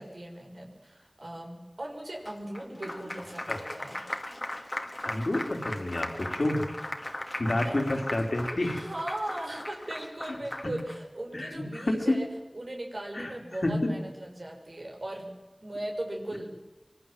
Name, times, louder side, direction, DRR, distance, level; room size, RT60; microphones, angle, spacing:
voice 1, 0.0-4.0 7.6-7.8 8.6-12.3 12.5-15.3 15.6-16.6, right 1 dB, 70° right, 1 dB, 6.1 m, -38 dB
Applause, 2.3-11.0, left 1 dB, 40° left, 2.4 m, -38 dB
voice 2, 5.0-6.7 7.4-8.8 10.6-10.8 11.3-12.2 13.1-13.3 13.6-13.9, left 1 dB, 75° left, 3 dB, 4.2 m, -29 dB
25.0 x 22.0 x 7.9 m, 1.1 s
wide cardioid pair, 40°, 0 cm